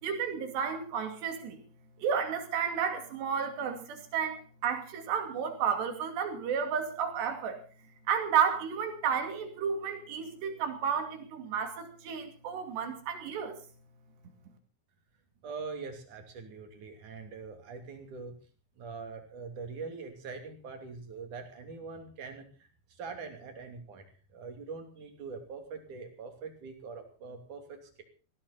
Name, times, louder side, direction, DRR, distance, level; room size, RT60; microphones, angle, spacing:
voice 1, 0.0-1.6 2.0-7.6 8.1-13.6, right 7 dB, 80° right, 6 dB, 4.7 m, -32 dB
voice 2, 15.4-18.3 18.8-24.1 24.3-28.0, right 4 dB, 50° right, 5 dB, 4.0 m, -43 dB
18.0 x 16.0 x 4.2 m, 0.37 s
omnidirectional pair, 4.9 m